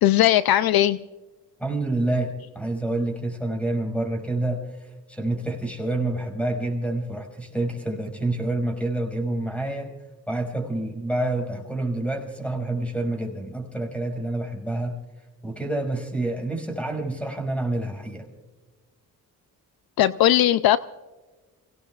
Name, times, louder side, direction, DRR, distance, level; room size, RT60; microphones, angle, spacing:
voice 1, 0.0-1.0 20.0-20.8, left 13 dB, 70° left, 14 dB, 0.5 m, -18 dB
voice 2, 1.6-9.9 10.3-15.0 15.4-18.3, right 2 dB, 5° left, 3 dB, 5.1 m, -28 dB
29.0 x 18.0 x 2.4 m, 1.3 s
cardioid pair, 65°, 38 cm